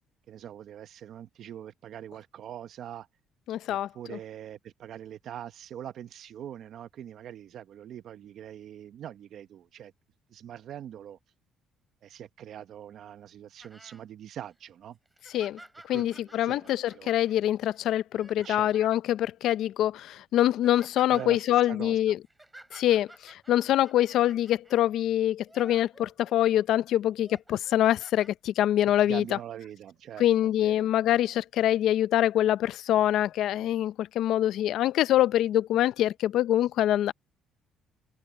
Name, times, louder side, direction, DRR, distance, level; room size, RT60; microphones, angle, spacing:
voice 1, 0.3-3.1 3.7-9.9 10.3-11.2 12.0-15.0 15.9-17.1 18.4-18.7 21.1-22.0 29.0-30.9, right 10 dB, 55° right, 0.8 m, -43 dB
voice 2, 3.5-4.2 15.3-15.6 15.9-22.2 22.7-29.4 30.2-37.1, left 12 dB, 65° left, 0.5 m, -25 dB
sound 1, 13.6-14.0 14.5-14.6 15.1-19.0 19.8-19.9 20.3-21.3 22.0-24.8 25.4-26.7 27.1-28.3 29.2-29.3, right 1 dB, 10° right, 4.2 m, -53 dB
open air
cardioid pair, 140°, 0 cm